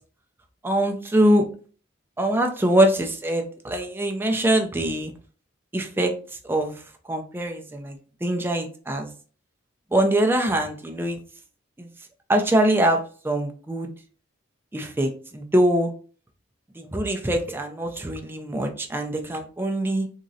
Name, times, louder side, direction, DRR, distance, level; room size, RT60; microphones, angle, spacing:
voice 1, 0.6-1.4 2.2-5.1 5.7-6.2 6.4-9.1 9.9-11.2 11.8-11.9 12.3-13.9 14.7-15.9 16.7-20.1, right 1 dB, 10° right, 4 dB, 0.3 m, -23 dB
3.6 x 2.0 x 2.6 m, 0.41 s
head